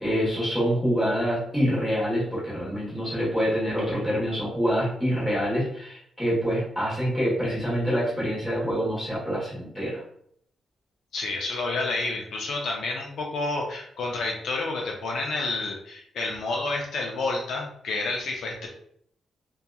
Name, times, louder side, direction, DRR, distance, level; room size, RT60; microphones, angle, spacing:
voice 1, 0.0-10.0, equal, ahead, -8 dB, 1.2 m, -26 dB
voice 2, 11.1-18.7, left 3 dB, 60° left, -1 dB, 0.4 m, -29 dB
2.7 x 2.3 x 2.3 m, 0.68 s
wide cardioid pair, 175°, 0 cm